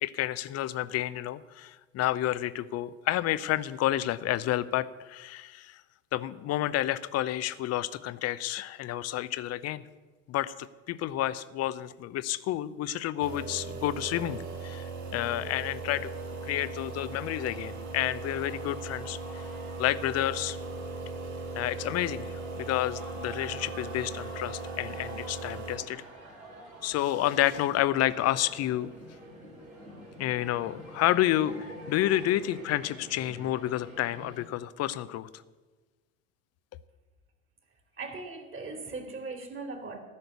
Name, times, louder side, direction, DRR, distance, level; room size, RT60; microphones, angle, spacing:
voice 1, 0.0-5.8 6.1-9.8 10.3-16.1 16.4-19.5 19.8-20.6 21.5-26.0 26.8-28.9 30.2-35.3, left 13 dB, 40° left, 16 dB, 0.6 m, -30 dB
sound 1, 13.2-25.8, right 3 dB, 45° right, 3.9 m, -38 dB
sound 2, 14.9-34.4, right 1 dB, 90° right, 3.2 m, -48 dB
voice 2, 38.0-40.0, right 3 dB, 30° right, 3 dB, 2.7 m, -39 dB
14.0 x 6.6 x 8.4 m, 1.3 s
figure-of-eight pair, 70°, 40 cm